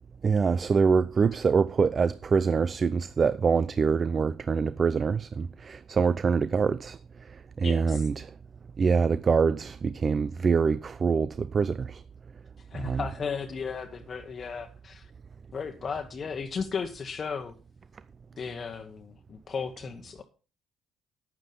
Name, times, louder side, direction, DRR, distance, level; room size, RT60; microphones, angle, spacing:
voice 1, 0.2-7.0 7.6-8.3 8.8-12.0 12.8-13.0, right 5 dB, 40° right, 0.5 m, -25 dB
voice 2, 7.6-8.1 12.6-15.1 15.5-17.6 18.4-20.2, left 5 dB, 45° left, 1.1 m, -35 dB
9.8 x 9.2 x 5.4 m
hypercardioid pair, 55°, 0 cm